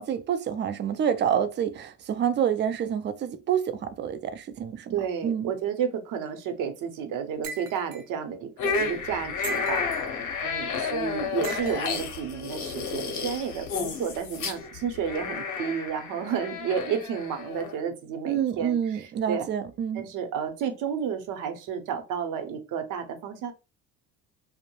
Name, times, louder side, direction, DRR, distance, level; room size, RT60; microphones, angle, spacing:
voice 1, 0.0-4.9 5.2-5.5 18.2-20.0, right 8 dB, 30° right, 0.4 m, -27 dB
voice 2, 4.9-9.8 10.4-19.5 19.9-23.5, right 7 dB, 60° right, 0.8 m, -31 dB
sound 1, 7.4-8.0 9.4-10.1 11.4-12.0, right 4 dB, 90° right, 0.5 m, -38 dB
sound 2, 8.6-17.8, left 5 dB, 55° left, 0.8 m, -32 dB
2.2 x 2.0 x 3.0 m
supercardioid pair, 75°, 36 cm